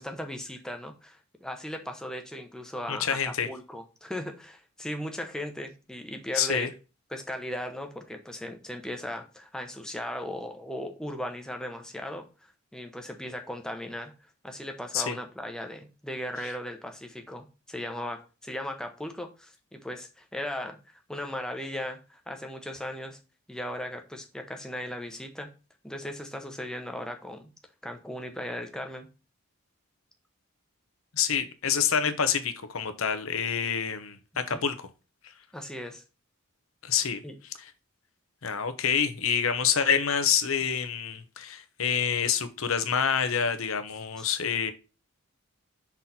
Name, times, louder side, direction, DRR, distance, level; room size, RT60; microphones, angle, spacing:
voice 1, 0.0-6.7 7.1-20.8 21.1-23.2 23.5-25.5 25.8-27.5 27.8-29.1 34.5-34.6 35.5-36.0 37.2-37.4 44.2-44.3, left 1 dB, 5° left, 0.9 m, -37 dB
voice 2, 2.9-3.5 6.3-6.7 14.9-15.2 31.1-34.7 36.8-37.2 38.4-44.7, left 7 dB, 75° left, 0.9 m, -27 dB
6.0 x 4.1 x 4.2 m
head